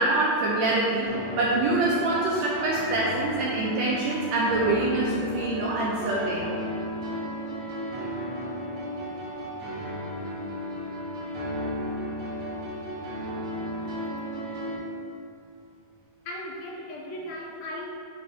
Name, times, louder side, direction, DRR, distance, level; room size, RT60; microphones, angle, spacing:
voice 1, 0.0-6.5, right 2 dB, 80° right, -4 dB, 1.6 m, -25 dB
sound 1, 1.1-14.8, equal, 50° right, 1.5 m, -34 dB
voice 2, 16.3-17.9, left 1 dB, 75° left, -1 dB, 1.9 m, -37 dB
8.3 x 3.1 x 4.0 m, 2.6 s
omnidirectional pair, 3.6 m